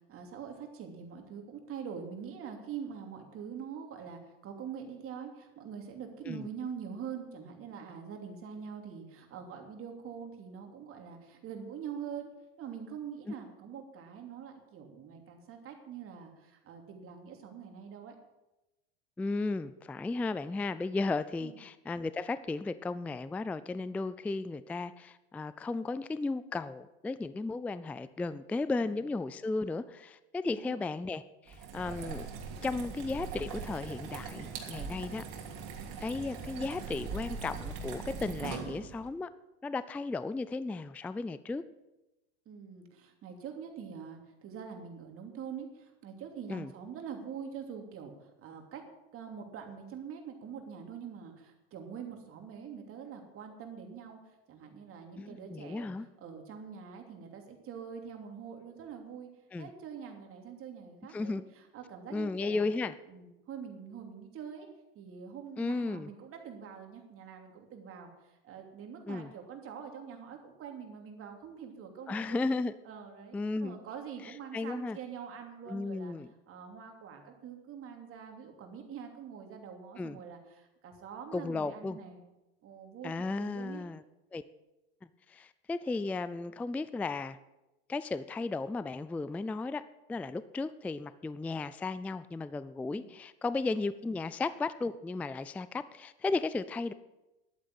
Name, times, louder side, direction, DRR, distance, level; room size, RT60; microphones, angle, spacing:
voice 1, 0.1-12.3 12.6-18.1 21.4-21.6 28.8-29.0 30.5-30.8 42.5-48.1 48.4-48.8 49.1-54.2 54.5-55.9 56.2-59.3 59.6-61.4 61.7-62.7 63.1-64.7 64.9-68.1 68.4-72.4 72.8-76.1 76.5-82.2 82.6-83.8 92.9-93.1 93.7-93.8, right 7 dB, 45° right, 3 dB, 3.0 m, -44 dB
voice 2, 19.2-32.3 32.6-35.2 36.0-39.3 39.6-41.6 46.5-46.7 55.2-56.1 59.5-59.7 61.1-61.4 62.1-63.0 65.6-66.1 69.1-69.3 72.1-72.7 73.3-73.8 74.2-75.0 75.7-76.3 80.0-80.2 81.3-82.0 83.0-84.0 84.3-84.4 85.3-87.4 87.9-89.8 90.1-96.9, left 3 dB, 5° left, 15 dB, 0.3 m, -35 dB
sound 1, 31.5-39.1, right 5 dB, 60° right, 3.0 m, -41 dB
11.5 x 8.7 x 7.8 m, 0.99 s
supercardioid pair, 105°, 32 cm